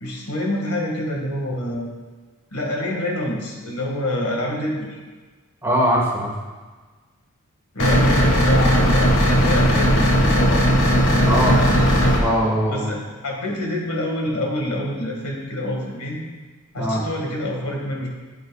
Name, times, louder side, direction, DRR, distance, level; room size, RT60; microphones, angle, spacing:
voice 1, 0.0-1.9 2.5-5.0 7.7-10.7 11.1-12.0 12.7-16.2 16.7-18.1, left 1 dB, 85° left, -1 dB, 1.8 m, -26 dB
voice 2, 5.6-6.3 11.3-11.6 12.2-12.9 16.7-17.0, equal, 10° right, -4 dB, 1.6 m, -21 dB
sound 1, 7.8-12.2, equal, 60° left, 1.6 m, -17 dB
12.5 x 6.8 x 2.4 m, 1.4 s
head